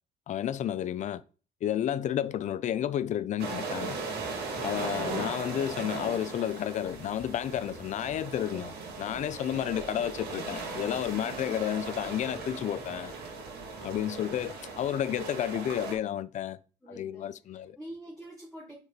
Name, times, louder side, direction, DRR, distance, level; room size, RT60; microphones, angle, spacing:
voice 1, 0.3-1.2 1.6-4.0 4.6-8.7 9.0-13.1 13.8-16.6 16.9-17.8, left 10 dB, 45° left, 0.4 m, -31 dB
sound 1, 3.4-16.0, right 4 dB, 70° right, 2.1 m, -38 dB
voice 2, 5.1-5.8 16.8-18.8, right 1 dB, 5° left, 2.7 m, -47 dB
5.1 x 4.6 x 4.0 m
cardioid pair, 110°, 17 cm